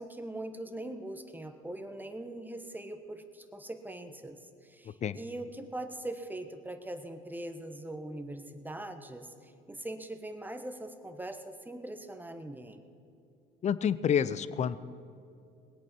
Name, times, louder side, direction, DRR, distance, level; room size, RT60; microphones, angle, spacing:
voice 1, 0.0-12.8, right 1 dB, 10° right, 7 dB, 1.2 m, -41 dB
voice 2, 4.8-5.2 13.6-14.8, left 8 dB, 40° left, 16 dB, 0.6 m, -29 dB
20.0 x 8.6 x 6.2 m, 2.5 s
supercardioid pair, 80°, 19 cm